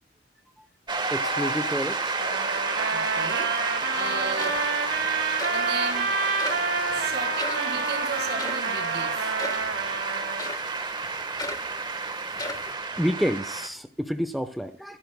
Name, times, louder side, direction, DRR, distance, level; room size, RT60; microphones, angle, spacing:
Shout / Cheering / Applause, 0.9-13.7, right 3 dB, 25° right, 1.3 m, -30 dB
voice 1, 1.1-2.4 13.0-15.0, equal, ahead, 8 dB, 0.9 m, -29 dB
Trumpet, 2.2-10.5, right 4 dB, 80° right, 1.9 m, -29 dB
voice 2, 2.9-3.5 3.9-4.6 5.5-6.1 6.9-9.2, right 4 dB, 65° right, 1 dB, 4.6 m, -34 dB
sound 1, 4.0-4.1 4.4-4.9 5.4-5.6 6.4-6.7 7.4-7.7 8.4-8.7 9.4-9.7 10.4-10.7 11.4-11.7 12.3-12.7, left 2 dB, 20° left, 1.3 m, -36 dB
25.0 x 12.0 x 2.2 m, 0.32 s
head